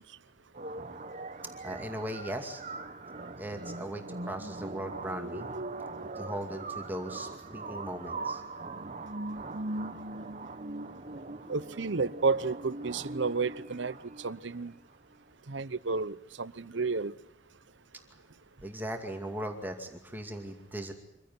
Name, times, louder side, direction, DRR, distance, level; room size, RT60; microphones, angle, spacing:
sound 1, 0.5-14.5, right 2 dB, 40° right, 1.1 m, -40 dB
voice 1, 1.6-2.6 3.4-5.5 6.0-8.4 18.6-20.9, right 1 dB, 10° right, 2.3 m, -38 dB
voice 2, 11.5-14.7 15.5-17.1, right 4 dB, 65° right, 0.9 m, -31 dB
25.5 x 16.0 x 9.4 m
head